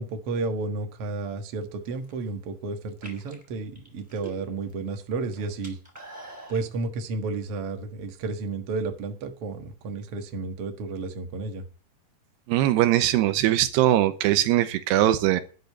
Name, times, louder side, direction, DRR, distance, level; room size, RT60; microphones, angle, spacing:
voice 1, 0.0-5.8 6.5-11.6, right 3 dB, 50° right, 5 dB, 1.9 m, -32 dB
sound 1, 1.8-2.3 2.9-4.7 5.0-6.7, right 2 dB, 10° right, 3.8 m, -45 dB
voice 2, 12.5-15.4, right 13 dB, 85° right, 11 dB, 3.0 m, -21 dB
12.0 x 6.7 x 8.7 m, 0.38 s
omnidirectional pair, 4.7 m